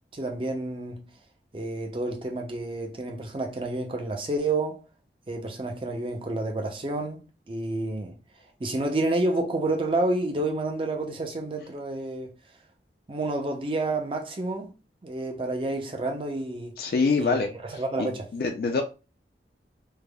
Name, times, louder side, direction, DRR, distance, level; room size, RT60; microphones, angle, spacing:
voice 1, 0.1-1.1 1.5-4.8 5.3-8.2 8.6-12.3 13.1-14.7 15.0-16.8 17.2-18.3, right 2 dB, 30° right, 0.5 m, -29 dB
voice 2, 16.8-17.5 18.0-18.8, left 4 dB, 60° left, 0.3 m, -25 dB
3.2 x 2.0 x 2.2 m
head